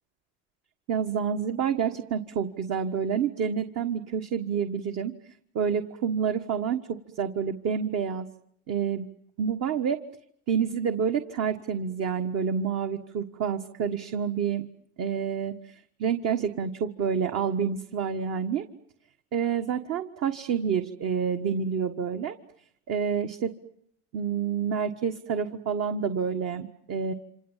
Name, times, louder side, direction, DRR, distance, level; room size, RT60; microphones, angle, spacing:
voice 1, 0.9-5.2 5.5-8.3 8.7-9.1 9.4-10.0 10.5-14.6 15.0-18.7 19.3-22.4 22.9-23.5 24.1-27.1, right 7 dB, 45° right, 7 dB, 1.6 m, -28 dB
27.5 x 26.5 x 7.4 m, 0.71 s
supercardioid pair, 110°, 34 cm